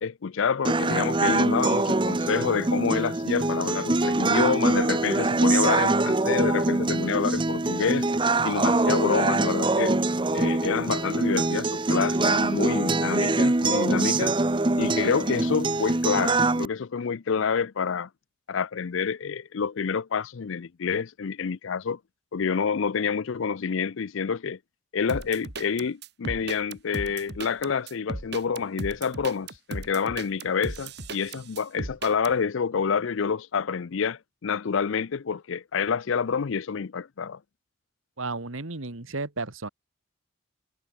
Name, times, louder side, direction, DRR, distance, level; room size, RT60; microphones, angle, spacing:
voice 1, 0.0-8.1 8.4-10.0 10.3-14.4 14.8-18.1 18.5-22.0 22.3-24.6 24.9-37.4, left 6 dB, 65° left, 0.5 m, -28 dB
sound 1, 0.6-16.7, right 2 dB, 20° right, 0.7 m, -24 dB
sound 2, 25.1-32.3, right 2 dB, 50° right, 3.1 m, -36 dB
voice 2, 38.2-39.7, right 3 dB, 70° right, 1.8 m, -33 dB
head